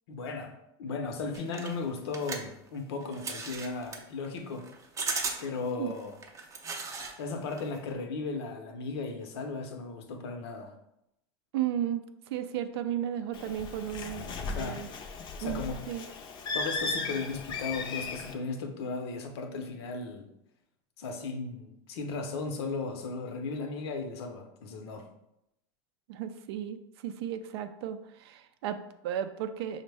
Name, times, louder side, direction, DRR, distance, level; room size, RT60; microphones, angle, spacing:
voice 1, 0.1-4.7 5.4-6.1 7.2-10.7 14.4-14.8 15.4-15.8 16.5-20.3 21.0-25.1, left 4 dB, 75° left, 5 dB, 0.7 m, -36 dB
sound 1, 1.3-7.2 7.5-7.9, right 4 dB, 25° right, 0.5 m, -37 dB
voice 2, 11.5-14.3 14.5-14.9 15.4-16.0 26.1-29.8, right 10 dB, 75° right, 10 dB, 0.4 m, -34 dB
Bird, 13.3-18.3, left 4 dB, 35° left, 0.5 m, -36 dB
5.1 x 2.1 x 3.3 m, 0.83 s
supercardioid pair, 120°, 13 cm